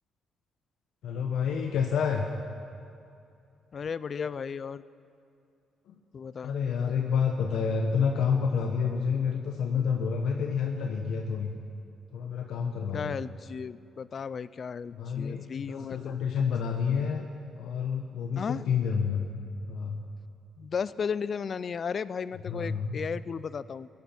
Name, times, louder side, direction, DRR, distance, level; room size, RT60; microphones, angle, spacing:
voice 1, 1.0-2.3 5.9-6.0 6.4-11.5 12.1-13.2 14.9-17.3 17.6-19.3 19.7-20.0 22.5-23.0, left 6 dB, 75° left, 3 dB, 0.9 m, -29 dB
voice 2, 3.7-4.8 6.1-6.5 12.9-16.2 18.4-18.6 20.6-23.9, left 6 dB, 45° left, 17 dB, 0.4 m, -34 dB
16.5 x 11.0 x 5.9 m, 2.5 s
cardioid pair, 90°, 0 cm